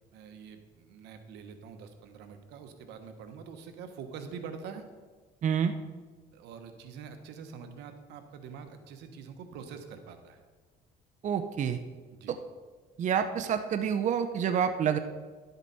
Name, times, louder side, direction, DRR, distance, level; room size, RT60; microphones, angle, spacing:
voice 1, 0.1-4.8 6.3-10.4 12.1-12.3, right 6 dB, 85° right, 7 dB, 1.2 m, -45 dB
voice 2, 5.4-5.7 11.2-11.8 12.3-12.4 13.0-15.0, right 8 dB, 45° right, 8 dB, 0.6 m, -28 dB
11.5 x 8.0 x 4.1 m, 1.4 s
cardioid pair, 110°, 17 cm